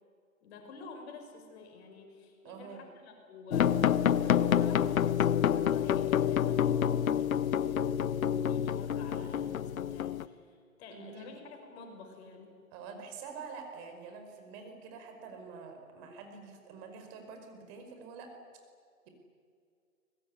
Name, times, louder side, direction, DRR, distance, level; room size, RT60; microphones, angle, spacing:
voice 1, 0.4-3.8 4.1-12.5, left 4 dB, 45° left, 4 dB, 6.4 m, -50 dB
voice 2, 2.4-2.8 10.9-11.4 12.7-18.3, right 5 dB, 35° right, 5 dB, 5.1 m, -46 dB
sound 1, 3.5-10.2, left 9 dB, 70° left, 1.0 m, -28 dB
24.0 x 20.5 x 9.7 m, 2.2 s
hypercardioid pair, 130°, 43 cm